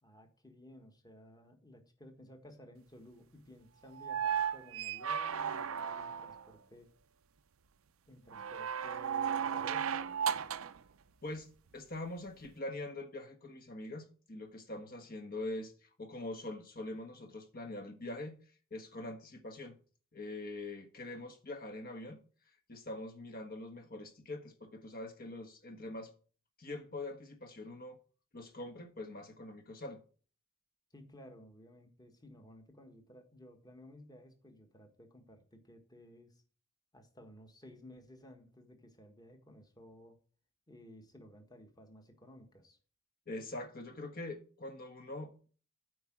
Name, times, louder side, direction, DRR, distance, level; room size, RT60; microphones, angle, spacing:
voice 1, 0.0-6.9 8.1-10.2 30.9-36.4 36.9-40.2 40.7-42.8, equal, 20° left, 1.5 m, -56 dB
sound 1, 4.0-6.5 8.3-10.8 12.4-12.5, right 8 dB, 85° right, 0.5 m, -35 dB
voice 2, 11.2-18.4 18.7-19.8 20.1-22.2 22.7-26.1 26.6-28.0 28.3-30.0 43.3-45.3, left 2 dB, 45° left, 1.4 m, -43 dB
8.5 x 4.8 x 7.3 m
head